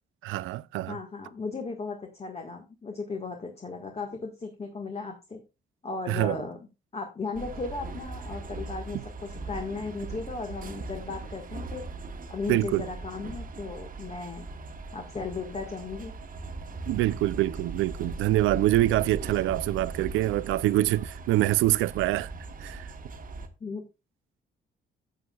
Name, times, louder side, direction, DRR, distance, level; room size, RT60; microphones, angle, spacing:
voice 1, 0.2-1.0 6.1-6.4 12.5-12.9 16.9-22.3 22.6-22.9, right 16 dB, 85° right, 0.4 m, -25 dB
voice 2, 0.9-5.4 5.8-6.6 6.9-11.8 12.3-14.5 14.9-16.1 23.6-23.8, left 4 dB, 30° left, 1.6 m, -36 dB
sound 1, 7.3-23.5, right 3 dB, 45° right, 1.3 m, -39 dB
12.5 x 7.6 x 2.3 m
cardioid pair, 90°, 20 cm